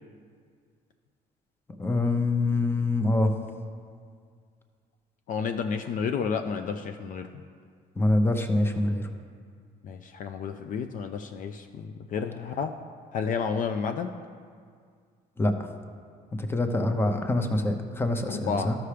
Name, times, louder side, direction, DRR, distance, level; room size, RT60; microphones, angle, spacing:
voice 1, 1.8-3.3 8.0-9.1 15.4-15.6 16.4-18.8, left 2 dB, 15° left, 6 dB, 0.7 m, -25 dB
voice 2, 5.3-7.3 9.8-12.7 13.1-14.1 18.3-18.7, left 6 dB, 50° left, 6 dB, 0.4 m, -31 dB
13.0 x 5.8 x 3.3 m, 2.1 s
cardioid pair, 110°, 17 cm